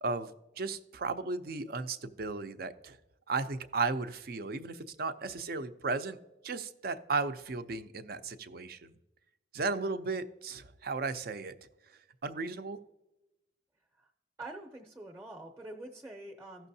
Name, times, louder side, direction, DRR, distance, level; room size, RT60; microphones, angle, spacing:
voice 1, 0.0-3.0 3.3-6.2 6.4-8.9 9.5-11.5 12.2-12.8, right 4 dB, 55° right, 11 dB, 0.5 m, -35 dB
voice 2, 14.4-16.7, right 2 dB, 15° right, 3 dB, 0.7 m, -45 dB
15.0 x 6.1 x 2.7 m, 0.97 s
head